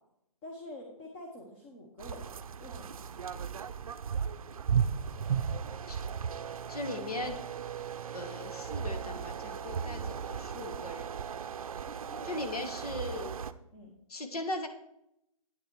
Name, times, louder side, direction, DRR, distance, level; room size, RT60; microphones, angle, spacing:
voice 1, 0.4-2.2 2.6-3.0 6.6-6.7 11.9-12.3 13.7-13.9, left 1 dB, 20° left, 1 dB, 1.0 m, -47 dB
sound 1, 2.0-13.5, right 7 dB, 65° right, 0.5 m, -36 dB
voice 2, 6.7-7.4 8.1-11.1 12.2-13.3 14.1-14.7, left 2 dB, 75° left, 8 dB, 1.5 m, -38 dB
9.1 x 7.0 x 4.5 m, 0.81 s
hypercardioid pair, 160°, 19 cm